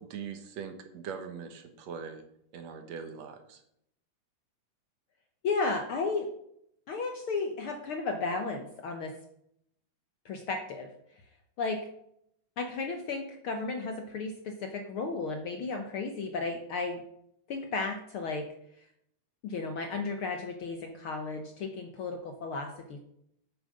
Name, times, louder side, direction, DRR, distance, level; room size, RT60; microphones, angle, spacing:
voice 1, 0.0-2.2 2.5-3.6, right 6 dB, 65° right, 6 dB, 2.3 m, -41 dB
voice 2, 5.4-6.3 6.9-9.1 10.2-10.9 11.6-11.9 12.6-17.0 17.5-18.5 19.4-23.0, left 3 dB, 65° left, 5 dB, 1.4 m, -34 dB
8.8 x 7.7 x 6.6 m, 0.74 s
omnidirectional pair, 3.4 m